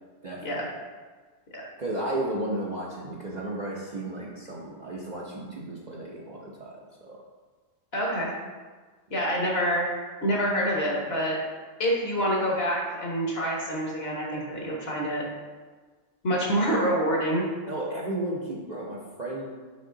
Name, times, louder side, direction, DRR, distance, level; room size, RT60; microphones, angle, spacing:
voice 1, 0.2-0.7 1.8-7.2 9.1-9.3 17.7-19.5, right 1 dB, 40° right, -4 dB, 0.7 m, -34 dB
voice 2, 7.9-8.3 9.1-9.9 10.2-11.4 11.8-15.3 16.2-17.5, equal, 50° left, -2 dB, 1.4 m, -26 dB
5.5 x 4.9 x 3.8 m, 1.4 s
omnidirectional pair, 1.4 m